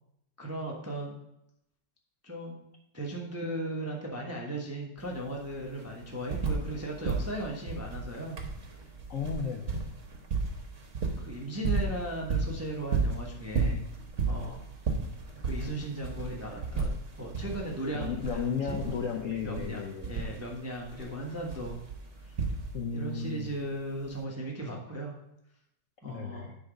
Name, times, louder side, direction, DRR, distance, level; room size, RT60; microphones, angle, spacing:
voice 1, 0.4-1.1 2.2-2.6 2.9-8.4 11.2-13.9 14.2-14.6 15.4-18.8 19.4-21.8 22.2-22.4 22.9-25.1 26.0-26.5, right 1 dB, 15° right, -1 dB, 0.6 m, -37 dB
sound 1, 5.0-5.1 5.3-6.8 7.0-23.0 24.1-24.2, right 4 dB, 45° right, 1.2 m, -33 dB
voice 2, 9.1-9.8 17.9-20.1 22.7-23.6 26.0-26.6, left 6 dB, 65° left, 2 dB, 0.8 m, -34 dB
10.0 x 4.0 x 5.0 m, 0.82 s
omnidirectional pair, 2.1 m